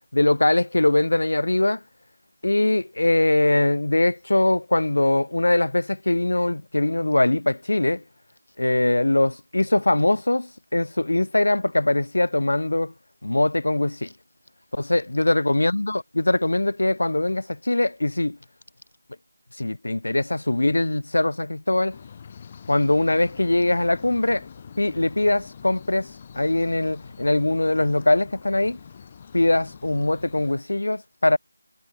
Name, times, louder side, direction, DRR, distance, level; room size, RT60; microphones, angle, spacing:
voice 1, 0.1-1.8 2.4-8.0 8.6-12.9 13.2-14.1 14.7-18.4 19.6-22.0 22.7-24.4 24.8-26.1 26.4-28.8 29.3-31.4, left 2 dB, 75° left, 1.9 m, -22 dB
sound 1, 21.9-30.5, left 6 dB, 15° left, 4.7 m, -45 dB
figure-of-eight pair, 180°, 0 cm